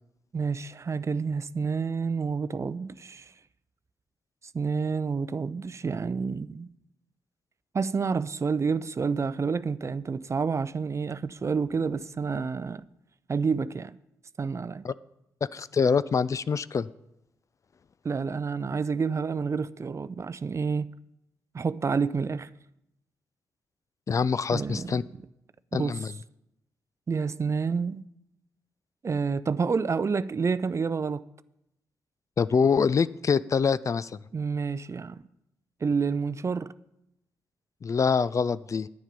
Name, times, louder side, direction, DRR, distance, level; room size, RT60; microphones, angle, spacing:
voice 1, 0.3-3.3 4.5-6.7 7.7-12.8 13.3-14.0 14.4-14.8 18.0-20.9 21.5-22.5 24.5-25.0 25.7-26.0 27.1-28.0 29.0-31.2 34.3-35.2 35.8-36.7, right 5 dB, 40° right, 0.5 m, -29 dB
voice 2, 15.5-16.9 24.1-25.0 25.7-26.1 32.4-34.1 37.8-38.9, left 5 dB, 40° left, 0.4 m, -25 dB
10.0 x 9.1 x 5.2 m
hypercardioid pair, 40°, 8 cm